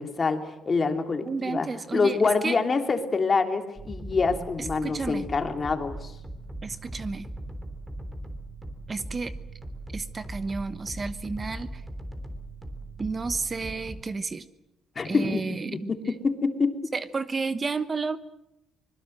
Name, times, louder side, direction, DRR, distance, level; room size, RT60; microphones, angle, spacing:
voice 1, 0.0-6.1 14.9-16.8, left 4 dB, 35° left, 6 dB, 2.8 m, -26 dB
voice 2, 1.3-2.2 2.4-2.6 4.6-5.3 6.6-7.3 8.9-9.3 9.9-11.8 13.0-14.4 15.0-15.9 16.9-18.2, right 4 dB, 30° right, 12 dB, 1.1 m, -31 dB
sound 1, 3.8-14.0, right 1 dB, 15° right, 3.5 m, -39 dB
24.5 x 21.5 x 7.8 m, 0.87 s
cardioid pair, 110°, 0 cm